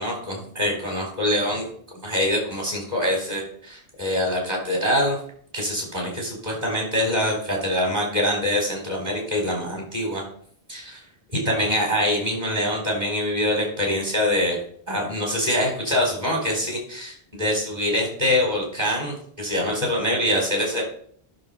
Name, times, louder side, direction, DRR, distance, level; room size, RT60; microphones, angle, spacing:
voice 1, 0.0-1.7 2.0-5.2 5.5-10.2 10.7-11.0 11.3-14.6 14.9-20.8, left 1 dB, 40° right, -1 dB, 4.3 m, -24 dB
11.5 x 6.5 x 5.5 m, 0.63 s
omnidirectional pair, 1.0 m